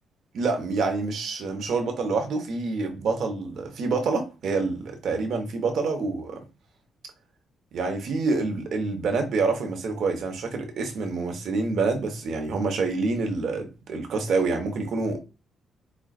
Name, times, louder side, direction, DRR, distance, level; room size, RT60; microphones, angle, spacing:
voice 1, 0.3-6.4 7.7-15.2, right 4 dB, 70° right, 1.0 m, -27 dB
5.0 x 2.3 x 2.4 m
cardioid pair, 75°, 0 cm